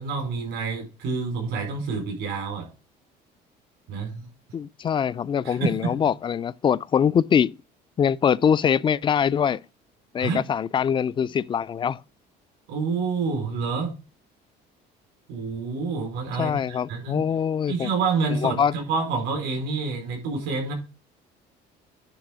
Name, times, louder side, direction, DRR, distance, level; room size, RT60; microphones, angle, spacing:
voice 1, 0.0-2.7 3.9-4.3 5.4-5.9 10.2-10.4 12.7-13.9 15.3-17.2 17.7-20.7, right 4 dB, 85° right, 4.6 m, -28 dB
voice 2, 4.5-7.6 8.0-9.6 10.1-12.0 16.4-17.9 18.3-18.7, left 7 dB, 25° left, 0.3 m, -23 dB
9.9 x 3.4 x 6.1 m
cardioid pair, 115°, 18 cm